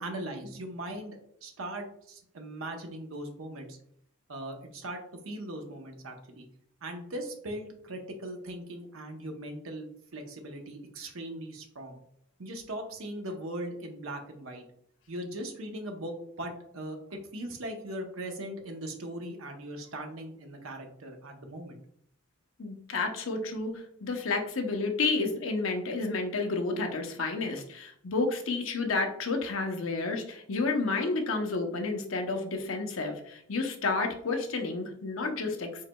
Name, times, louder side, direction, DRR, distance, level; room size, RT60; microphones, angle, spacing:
voice 1, 0.0-3.8 4.3-5.0 5.2-6.5 6.8-12.0 12.4-14.6 15.1-21.8, right 1 dB, 75° right, 4 dB, 0.9 m, -39 dB
voice 2, 22.6-35.9, left 3 dB, 70° left, 3 dB, 0.8 m, -31 dB
4.7 x 4.1 x 2.2 m, 0.68 s
head